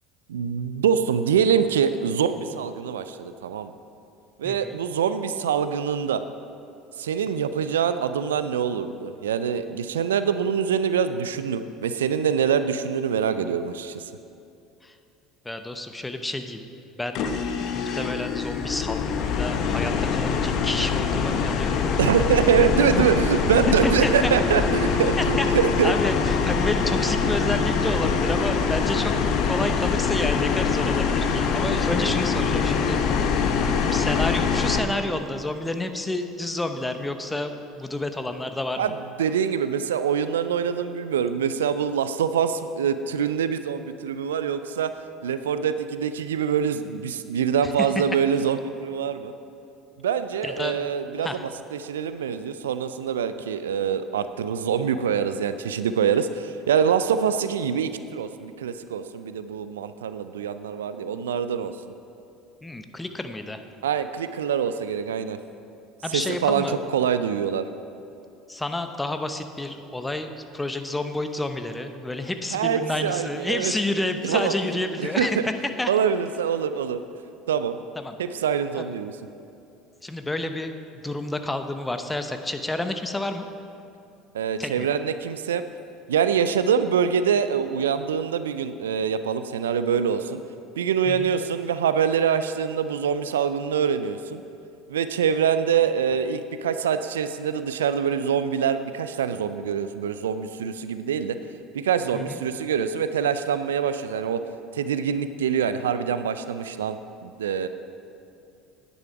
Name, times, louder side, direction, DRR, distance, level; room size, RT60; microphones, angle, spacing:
voice 1, 0.3-3.7 4.4-6.2 7.0-14.1 22.0-25.9 38.8-44.9 45.2-49.3 50.0-61.7 63.8-65.4 66.1-67.7 72.5-73.7 74.2-74.5 75.0-75.4 75.9-77.0 77.5-77.8 78.2-79.1 84.3-85.6 86.1-90.4 90.8-94.4 94.9-101.4 101.7-104.4 104.7-107.7, right 7 dB, 80° right, 11 dB, 0.3 m, -24 dB
voice 2, 4.4-4.8 14.8-15.0 15.4-16.7 17.0-17.2 17.7-21.9 22.9-23.0 23.7-24.3 25.2-25.5 25.8-29.1 29.4-33.3 33.9-38.9 47.6-47.9 50.4-50.9 51.2-51.4 62.6-63.6 66.0-66.8 68.5-75.5 75.8-75.9 78.0-78.2 78.8-78.9 80.0-83.5 84.6-84.9 91.1-91.3 102.1-102.4, left 2 dB, 10° left, 7 dB, 0.8 m, -30 dB
sound 1, 17.1-34.8, left 5 dB, 55° left, 0.9 m, -24 dB
10.0 x 10.0 x 4.7 m, 2.6 s
hypercardioid pair, 70°, 0 cm